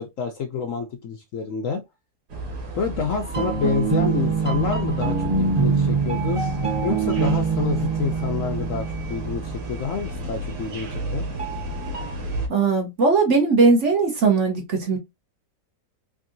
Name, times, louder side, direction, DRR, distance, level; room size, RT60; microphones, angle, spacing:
voice 1, 0.0-1.8 2.7-6.4 6.8-11.2, left 6 dB, 65° left, 0.8 m, -28 dB
sound 1, 2.3-12.5, right 1 dB, 75° right, 1.6 m, -32 dB
sound 2, 3.2-9.9 11.4-12.1, right 6 dB, 35° right, 0.5 m, -25 dB
voice 2, 12.5-15.0, right 4 dB, 55° right, 1.0 m, -19 dB
3.6 x 3.3 x 2.5 m
omnidirectional pair, 1.8 m